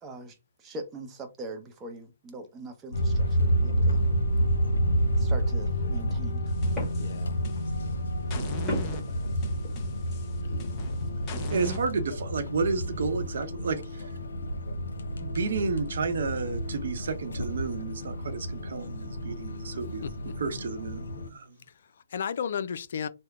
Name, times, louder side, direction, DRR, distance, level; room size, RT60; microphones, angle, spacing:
voice 1, 0.0-4.0 5.2-6.4, right 2 dB, 15° right, 0.7 m, -42 dB
sound 1, 2.9-21.3, equal, 70° left, 0.8 m, -29 dB
sound 2, 6.3-7.4 8.7-9.9, left 1 dB, 5° left, 1.5 m, -37 dB
sound 3, 6.5-7.9 8.3-11.8, left 1 dB, 25° left, 0.8 m, -41 dB
voice 2, 7.0-7.4 8.8-8.9 10.4-10.7 20.0-20.4 21.7-23.1, left 7 dB, 55° left, 0.4 m, -35 dB
voice 3, 11.5-14.1 14.7-14.9 15.2-20.0 20.4-21.6, right 4 dB, 60° right, 0.8 m, -31 dB
3.6 x 2.1 x 3.5 m
hypercardioid pair, 140°, 0 cm